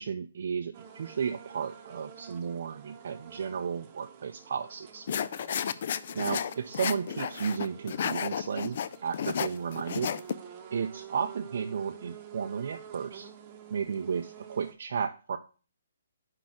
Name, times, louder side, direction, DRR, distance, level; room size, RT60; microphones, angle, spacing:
voice 1, 0.0-5.1 6.1-10.1 10.7-13.3 13.7-15.4, right 6 dB, 60° right, 5 dB, 0.4 m, -33 dB
sound 1, 0.7-14.7, right 8 dB, 30° right, 0.9 m, -49 dB
sound 2, 5.1-10.3, left 8 dB, 50° left, 0.3 m, -32 dB
4.9 x 4.1 x 5.7 m, 0.36 s
hypercardioid pair, 150°, 0 cm